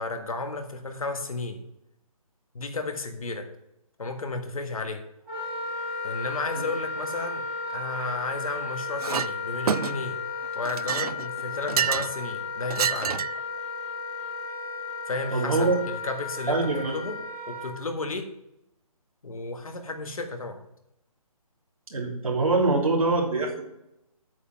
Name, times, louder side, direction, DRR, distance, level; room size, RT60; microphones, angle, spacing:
voice 1, 0.0-1.6 2.5-3.5 4.0-5.0 6.0-10.2 10.5-13.2 15.1-17.2 17.5-18.3 19.2-20.6, left 3 dB, 65° left, 6 dB, 1.6 m, -33 dB
Wind instrument woodwind instrument, 5.2-17.7, left 4 dB, 5° right, 3.9 m, -34 dB
Chink clink, 9.0-9.3 9.7-10.2 10.7-12.2 12.7-13.4, right 8 dB, 80° right, 0.4 m, -28 dB
voice 2, 15.3-15.8 16.5-16.9 21.9-23.6, right 3 dB, 65° right, -1 dB, 3.1 m, -24 dB
8.3 x 7.5 x 5.9 m, 0.81 s
hypercardioid pair, 180°, 19 cm